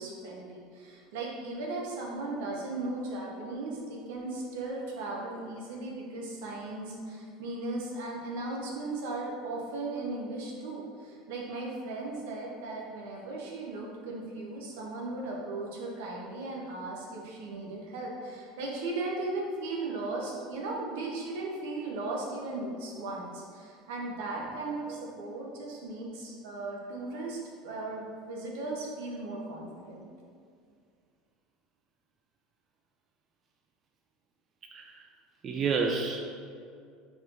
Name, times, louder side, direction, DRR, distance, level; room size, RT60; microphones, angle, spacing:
voice 1, 0.0-30.1, right 2 dB, 85° right, -2 dB, 1.0 m, -37 dB
voice 2, 34.7-35.1 35.4-36.3, right 4 dB, 30° right, 1 dB, 0.3 m, -30 dB
4.7 x 2.7 x 3.8 m, 2.3 s
supercardioid pair, 150°, 0 cm